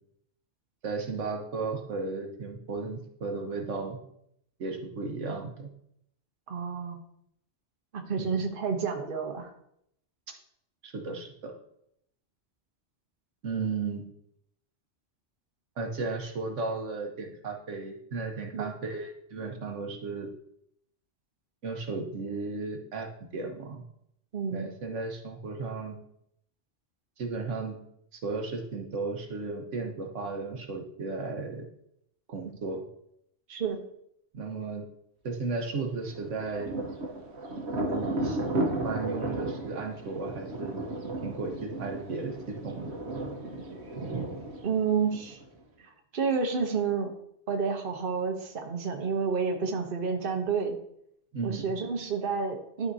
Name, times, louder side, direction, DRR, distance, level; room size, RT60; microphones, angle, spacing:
voice 1, 0.8-4.0 4.6-5.7 8.2-8.4 10.8-11.5 13.4-14.0 15.8-20.3 21.6-23.8 24.5-26.0 27.2-27.8 28.1-31.6 32.3-32.8 34.3-34.8 35.2-36.7 37.9-40.8 41.2-42.8 51.3-51.7, right 4 dB, 90° right, 2 dB, 1.4 m, -35 dB
voice 2, 6.5-7.0 7.9-9.5 18.5-18.7 24.3-24.7 33.5-33.8 44.6-45.4 45.8-47.1 47.5-50.8 51.4-52.9, right 5 dB, 50° right, 3 dB, 1.1 m, -30 dB
Thunder, 36.1-45.6, right 2 dB, 65° right, 1.3 m, -34 dB
12.0 x 4.3 x 2.7 m, 0.72 s
omnidirectional pair, 1.2 m